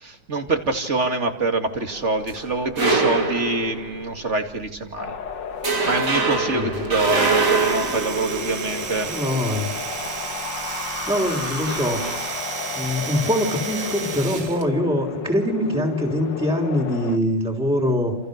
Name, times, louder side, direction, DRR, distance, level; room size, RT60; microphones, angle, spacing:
voice 1, 0.0-5.1 5.8-9.1 10.0-10.1, right 3 dB, 40° right, 6 dB, 2.6 m, -25 dB
sound 1, 1.9-4.2 4.6-4.8 5.2-5.3 5.6-9.1 11.2-12.2, right 4 dB, 70° right, 4.2 m, -24 dB
Wind, 5.0-17.2, left 6 dB, 85° left, 2.1 m, -33 dB
voice 2, 6.5-6.8 9.1-9.7 11.1-12.0 12.8-18.2, equal, 5° right, 0 dB, 3.4 m, -23 dB
Domestic sounds home sounds, 6.8-14.7, right 5 dB, 85° right, 2.6 m, -32 dB
29.0 x 28.5 x 6.7 m, 0.79 s
omnidirectional pair, 1.9 m